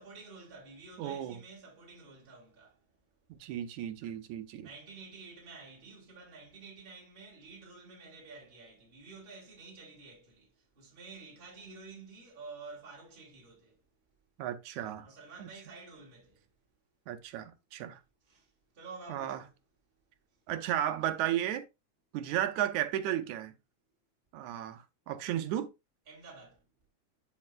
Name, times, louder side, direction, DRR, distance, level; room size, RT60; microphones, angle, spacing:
voice 1, 0.0-3.6 4.6-13.9 15.0-16.6 18.2-19.6 20.3-20.4 26.1-26.7, right 4 dB, 20° right, 2.9 m, -51 dB
voice 2, 1.0-1.4 3.4-4.7 14.4-15.1 17.1-18.0 19.1-19.4 20.5-21.6 22.1-23.5 24.3-25.7, right 11 dB, 85° right, 2.2 m, -34 dB
11.0 x 5.2 x 2.4 m
omnidirectional pair, 3.4 m